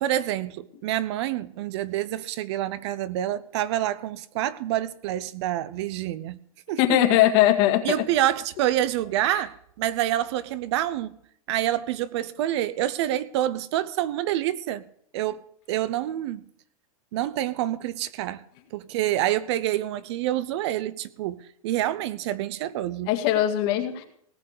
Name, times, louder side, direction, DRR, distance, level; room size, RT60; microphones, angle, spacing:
voice 1, 0.0-6.4 6.7-7.0 7.8-11.2 11.5-14.8 15.1-15.4 15.7-16.5 17.1-18.4 18.7-23.1, right 13 dB, 50° right, 0.7 m, -27 dB
voice 2, 6.8-8.0 23.1-24.0, left 12 dB, 45° left, 2.0 m, -20 dB
18.0 x 6.7 x 6.6 m
supercardioid pair, 155°, 18 cm